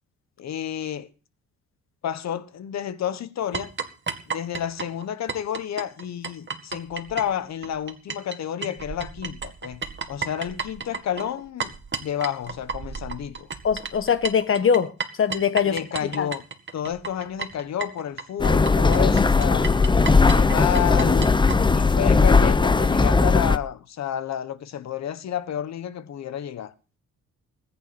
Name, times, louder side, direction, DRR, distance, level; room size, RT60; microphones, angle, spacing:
voice 1, 0.4-1.1 2.0-3.7 4.3-13.5 15.6-16.4 16.7-19.7 20.1-21.3 21.7-26.7, left 10 dB, 60° left, 1.3 m, -30 dB
sound 1, 3.5-8.4 8.6-21.6, right 5 dB, 40° right, 2.1 m, -33 dB
voice 2, 13.6-14.9 15.2-15.8 16.2-16.3, left 7 dB, 45° left, 1.4 m, -21 dB
sound 2, 18.4-23.6, left 4 dB, 15° left, 0.7 m, -18 dB
20.0 x 9.4 x 4.3 m
cardioid pair, 90°, 30 cm